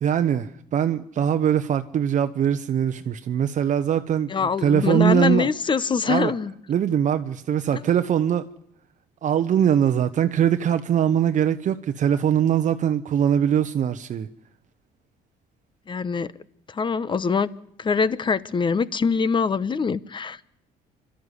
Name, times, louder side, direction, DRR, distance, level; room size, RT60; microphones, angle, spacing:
voice 1, 0.0-4.3 4.6-5.5 6.1-6.3 6.7-8.4 9.2-14.3, right 9 dB, 45° right, 0.9 m, -22 dB
voice 2, 4.3-6.5 7.7-7.8 15.9-16.3 16.7-17.5 17.8-20.4, left 5 dB, 30° left, 0.9 m, -23 dB
27.5 x 13.0 x 9.8 m
cardioid pair, 110°, 17 cm